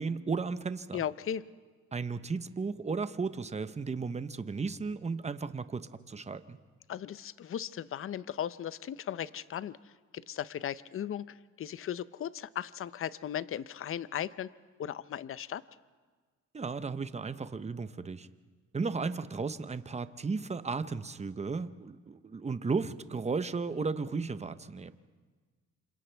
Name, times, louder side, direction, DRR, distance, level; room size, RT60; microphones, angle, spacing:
voice 1, 0.0-1.0 1.9-6.6 16.5-18.3 18.7-24.9, right 4 dB, 20° right, 12 dB, 0.9 m, -34 dB
voice 2, 0.9-1.4 6.9-9.8 10.1-14.5 14.8-15.6, left 10 dB, 45° left, 16 dB, 0.6 m, -37 dB
28.0 x 27.0 x 3.4 m, 1.5 s
cardioid pair, 90°, 30 cm